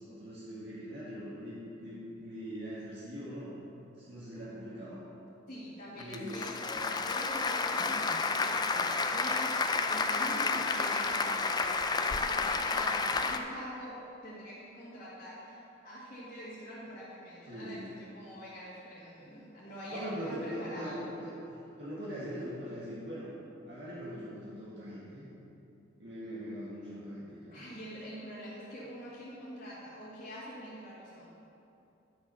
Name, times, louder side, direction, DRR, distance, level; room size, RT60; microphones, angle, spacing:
voice 1, 0.0-3.6 4.0-5.2 5.9-6.5 17.5-18.0 19.9-23.3 23.7-25.3 26.0-27.6, equal, 60° right, -9 dB, 1.8 m, -41 dB
voice 2, 5.5-21.1 27.5-31.3, equal, 40° left, -9 dB, 1.7 m, -45 dB
Applause, 6.0-13.4, left 4 dB, 20° left, 0.4 m, -30 dB
9.7 x 6.2 x 5.6 m, 2.8 s
head